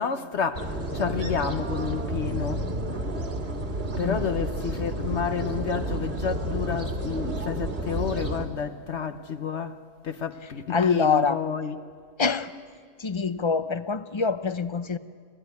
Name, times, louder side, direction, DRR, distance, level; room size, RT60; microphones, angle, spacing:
voice 1, 0.0-2.6 4.0-9.8 10.0-11.8, left 6 dB, 60° left, 1.1 m, -30 dB
sound 1, 0.5-8.5, right 1 dB, 50° right, 2.2 m, -31 dB
voice 2, 10.7-11.4 12.2-12.5 13.0-15.0, left 5 dB, 35° left, 0.5 m, -25 dB
26.5 x 17.0 x 9.4 m
omnidirectional pair, 1.4 m